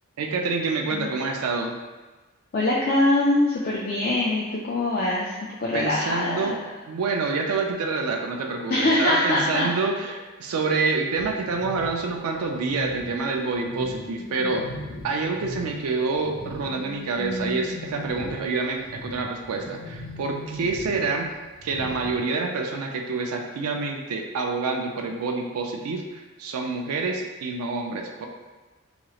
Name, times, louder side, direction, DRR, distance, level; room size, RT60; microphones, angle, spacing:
voice 1, 0.2-1.8 5.7-6.6 6.9-14.6 15.0-21.3 21.6-28.3, right 4 dB, 75° right, 2 dB, 0.4 m, -27 dB
voice 2, 2.5-6.6 8.7-9.7, left 2 dB, 40° left, -6 dB, 0.3 m, -23 dB
sound 1, 11.1-15.8 16.1-22.2, left 1 dB, 80° left, 1.2 m, -38 dB
2.9 x 2.9 x 2.3 m, 1.3 s
head